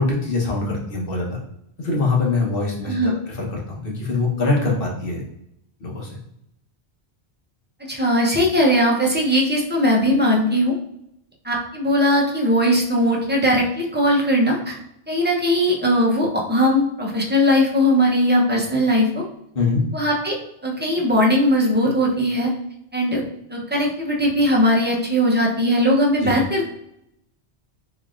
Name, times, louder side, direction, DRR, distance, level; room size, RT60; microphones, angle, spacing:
voice 1, 0.0-1.4 1.8-5.2 5.8-6.2 19.5-19.8 26.2-26.3, left 3 dB, 60° left, -2 dB, 1.2 m, -23 dB
voice 2, 7.9-10.8 11.4-14.8 15.1-19.2 19.9-20.4 20.6-22.5 22.9-23.2 23.5-26.6, equal, 10° right, -2 dB, 0.6 m, -19 dB
4.0 x 3.4 x 2.4 m, 0.79 s
omnidirectional pair, 1.1 m